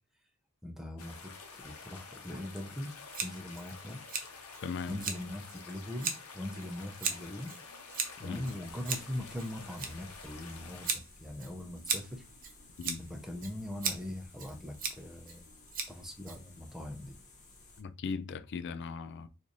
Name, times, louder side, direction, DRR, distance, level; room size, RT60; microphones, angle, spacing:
voice 1, 0.6-4.0 4.9-7.6 8.2-12.2 13.0-15.5 15.9-17.2, left 1 dB, ahead, 0.6 m, -41 dB
sound 1, 1.0-10.9, left 5 dB, 80° left, 0.8 m, -49 dB
Scissors, 3.1-16.8, right 5 dB, 40° right, 0.7 m, -40 dB
voice 2, 4.6-5.0 8.2-8.5 12.8-13.0 17.8-19.3, left 5 dB, 55° left, 0.4 m, -38 dB
sound 2, 8.6-17.8, left 2 dB, 35° left, 0.8 m, -56 dB
3.1 x 2.5 x 3.9 m
head